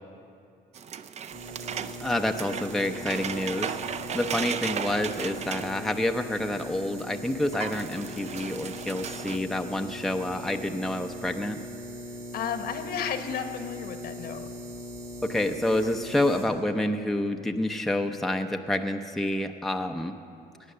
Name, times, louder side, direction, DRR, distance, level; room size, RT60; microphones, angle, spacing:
sound 1, 0.7-6.6 7.0-7.1 7.3-9.4, right 7 dB, 40° right, 0.5 m, -36 dB
sound 2, 1.3-16.5, equal, 85° right, 3.6 m, -40 dB
voice 1, 2.0-11.6 15.2-20.1, left 1 dB, ahead, 5 dB, 0.6 m, -28 dB
voice 2, 12.3-14.5, left 7 dB, 65° left, 7 dB, 1.2 m, -33 dB
18.0 x 8.9 x 6.6 m, 2.4 s
cardioid pair, 110°, 17 cm